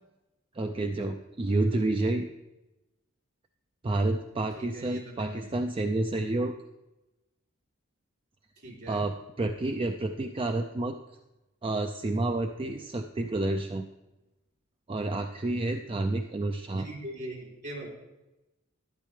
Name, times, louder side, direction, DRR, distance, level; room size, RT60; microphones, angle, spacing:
voice 1, 0.5-2.3 3.8-6.5 8.9-11.0 11.6-13.9 14.9-16.9, right 2 dB, 25° right, 5 dB, 0.4 m, -29 dB
voice 2, 4.6-5.5 8.6-9.0 16.7-17.9, right 1 dB, 55° right, -1 dB, 3.1 m, -41 dB
12.0 x 10.5 x 3.2 m, 1.0 s
head